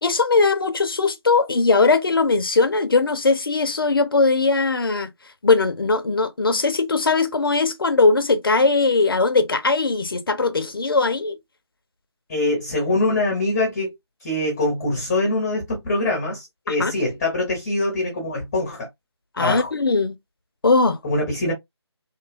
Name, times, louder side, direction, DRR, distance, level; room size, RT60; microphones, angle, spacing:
voice 1, 0.0-5.1 5.4-11.4 16.7-16.9 19.4-20.2 20.6-21.0, left 3 dB, 55° left, 0.6 m, -19 dB
voice 2, 12.3-13.9 14.2-18.9 19.4-19.7 21.0-21.5, left 2 dB, 15° left, 0.7 m, -23 dB
2.7 x 2.3 x 2.4 m
figure-of-eight pair, 160°, 14 cm